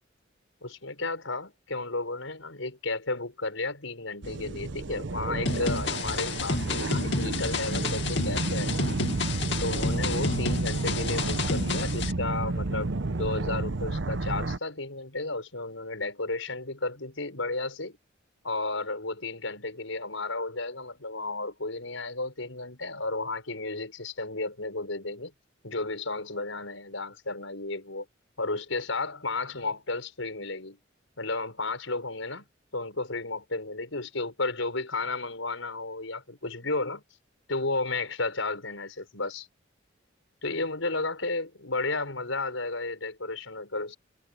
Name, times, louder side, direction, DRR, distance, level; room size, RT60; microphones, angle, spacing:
voice 1, 0.6-8.7 9.6-18.0 18.4-25.3 25.6-28.1 28.4-30.8 31.2-32.5 32.7-37.0 37.5-39.5 40.4-44.0, left 3 dB, 85° left, 5.7 m, -33 dB
sound 1, 4.2-14.6, right 2 dB, 65° right, 0.9 m, -31 dB
sound 2, 5.5-12.1, left 3 dB, 65° left, 2.5 m, -31 dB
head